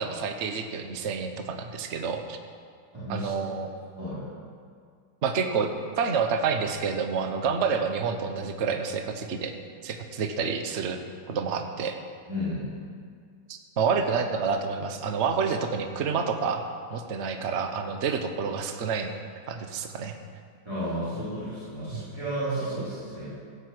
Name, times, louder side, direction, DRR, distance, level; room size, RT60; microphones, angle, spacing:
voice 1, 0.0-2.4 3.1-3.7 5.2-5.7 6.0-9.5 9.8-11.0 11.3-11.9 13.5-16.6 16.9-19.1 19.5-20.2 21.9-22.0, right 5 dB, 45° right, 6 dB, 1.0 m, -28 dB
voice 2, 2.9-3.3 3.9-4.2 12.3-12.7 20.6-23.3, equal, 10° right, -14 dB, 4.4 m, -32 dB
16.5 x 6.6 x 7.9 m, 2.1 s
omnidirectional pair, 2.2 m